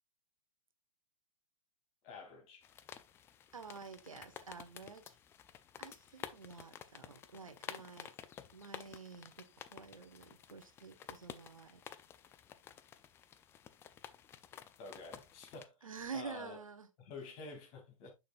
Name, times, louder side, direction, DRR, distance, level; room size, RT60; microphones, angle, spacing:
voice 1, 2.0-2.7 14.8-15.7 16.1-16.6 17.0-18.1, left 4 dB, 35° left, 2.7 m, -49 dB
sound 1, 2.6-15.7, left 9 dB, 15° left, 0.4 m, -52 dB
voice 2, 3.5-5.2 5.8-8.1 8.5-11.8 15.8-16.9, right 5 dB, 75° right, 1.2 m, -49 dB
7.1 x 6.3 x 2.4 m
figure-of-eight pair, 115°, 18 cm